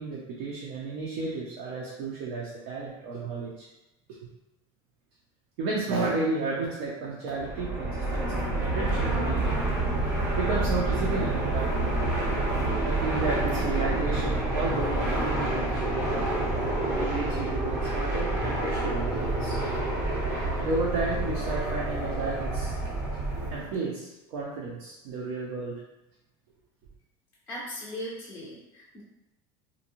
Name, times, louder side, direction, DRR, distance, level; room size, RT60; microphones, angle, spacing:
voice 1, 0.0-3.7 5.6-9.6 10.3-11.9 12.8-16.0 16.9-19.6 20.6-22.7 23.5-25.8, right 3 dB, 70° right, -4 dB, 0.6 m, -32 dB
Fixed-wing aircraft airplane, 7.3-23.7, right 2 dB, 20° right, 0.7 m, -28 dB
voice 2, 27.5-29.0, equal, 15° left, -7 dB, 0.4 m, -38 dB
2.6 x 2.2 x 2.9 m, 0.93 s
cardioid pair, 155°, 13 cm